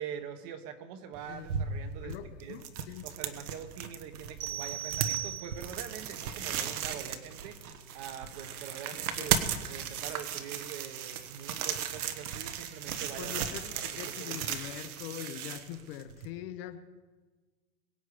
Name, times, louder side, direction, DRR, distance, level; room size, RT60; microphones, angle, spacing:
voice 1, 0.0-2.6 3.0-7.6 7.9-9.3 9.7-13.3 13.6-14.4, right 8 dB, 35° right, 9 dB, 1.1 m, -44 dB
sound 1, 1.1-16.3, right 8 dB, 75° right, 1.3 m, -36 dB
voice 2, 2.0-3.1 9.2-9.3 13.2-16.9, left 12 dB, 40° left, 10 dB, 0.8 m, -43 dB
sound 2, 4.4-5.9, right 13 dB, 55° right, 1.0 m, -37 dB
22.5 x 8.0 x 4.9 m, 1.3 s
supercardioid pair, 155°, 44 cm